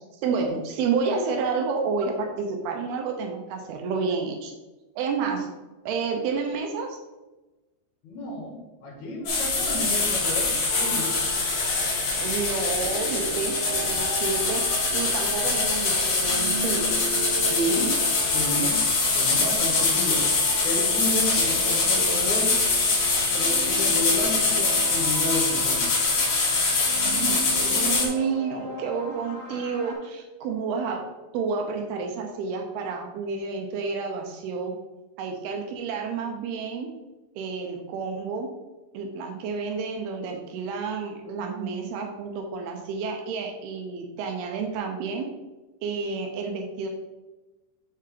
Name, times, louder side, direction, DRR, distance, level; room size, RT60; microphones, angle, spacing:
voice 1, 0.0-4.5 5.0-5.5 5.9-7.0 12.2-14.6 14.9-16.9 27.1-31.0 31.3-34.7 35.2-36.9 37.4-38.5 38.9-45.3 45.8-46.9, right 5 dB, 80° right, 3 dB, 2.4 m, -30 dB
voice 2, 8.0-11.1 17.4-18.0 18.3-18.9 19.1-20.3 20.5-22.5 23.3-25.9, equal, 65° left, -2 dB, 2.1 m, -31 dB
sound 1, 9.3-28.1, left 3 dB, 80° left, 1.2 m, -24 dB
sound 2, 10.7-29.9, right 1 dB, 45° right, 2.6 m, -37 dB
6.6 x 5.0 x 3.7 m, 1.1 s
omnidirectional pair, 5.1 m